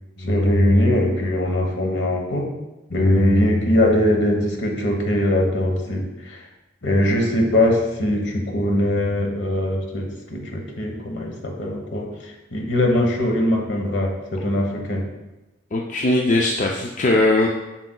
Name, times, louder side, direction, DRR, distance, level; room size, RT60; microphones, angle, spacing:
voice 1, 0.2-2.5 2.9-6.4 6.8-15.0, left 1 dB, 65° left, 1 dB, 1.1 m, -21 dB
voice 2, 15.7-17.5, left 2 dB, 40° left, 0 dB, 0.4 m, -19 dB
7.5 x 5.9 x 2.3 m, 1.0 s
head